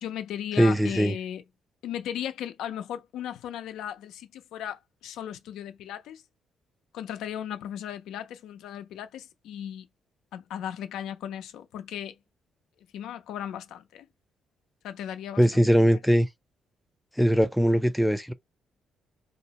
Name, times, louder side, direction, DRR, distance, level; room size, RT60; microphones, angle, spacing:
voice 1, 0.0-1.4 1.8-6.2 6.9-9.9 10.3-12.2 12.9-14.1 14.8-15.6, left 10 dB, 85° left, 0.4 m, -36 dB
voice 2, 0.6-1.1 15.4-16.3 17.2-18.3, equal, ahead, 0.3 m, -21 dB
2.5 x 2.0 x 2.8 m
cardioid pair, 90°, 0 cm